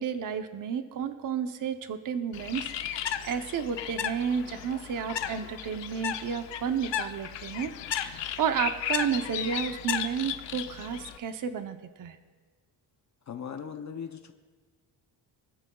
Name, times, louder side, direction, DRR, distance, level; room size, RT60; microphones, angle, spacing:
voice 1, 0.0-12.2, right 7 dB, 50° right, 7 dB, 0.8 m, -32 dB
Bird, 2.3-11.2, left 10 dB, 90° left, 0.8 m, -35 dB
voice 2, 13.3-14.3, left 7 dB, 40° left, 6 dB, 0.7 m, -38 dB
24.0 x 13.5 x 2.3 m, 1.5 s
cardioid pair, 135°, 42 cm